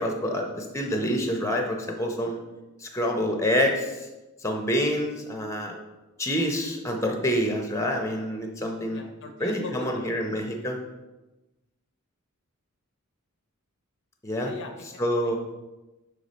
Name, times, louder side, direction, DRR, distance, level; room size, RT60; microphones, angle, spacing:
voice 1, 0.0-2.4 2.8-3.9 4.4-5.7 6.2-9.0 9.4-10.8 14.2-14.5 15.0-15.4, equal, 15° left, 2 dB, 0.7 m, -27 dB
voice 2, 8.9-10.1 14.4-15.0, left 3 dB, 55° left, 5 dB, 0.5 m, -39 dB
6.5 x 3.5 x 4.1 m, 1.1 s
head